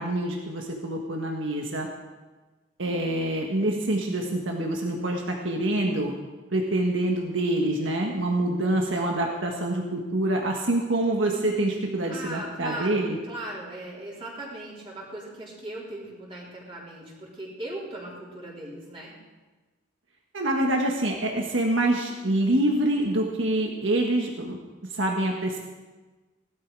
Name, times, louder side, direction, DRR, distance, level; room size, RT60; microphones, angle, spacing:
voice 1, 0.0-1.9 2.8-6.2 6.5-13.2 20.3-24.6 24.9-25.6, right 1 dB, 75° right, 1 dB, 1.5 m, -26 dB
voice 2, 12.1-19.1, right 1 dB, 25° right, -5 dB, 3.7 m, -38 dB
17.5 x 12.5 x 4.8 m, 1.3 s
head